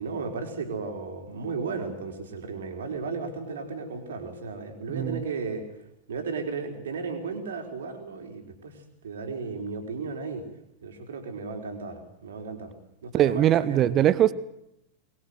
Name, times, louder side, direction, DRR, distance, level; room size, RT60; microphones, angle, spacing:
voice 1, 0.0-5.6 6.1-10.5 10.8-12.7 13.0-13.9, right 4 dB, 65° right, 5 dB, 4.5 m, -34 dB
voice 2, 13.1-14.3, right 12 dB, 30° right, 18 dB, 1.0 m, -21 dB
24.0 x 21.0 x 8.0 m, 0.83 s
figure-of-eight pair, 90°, 0 cm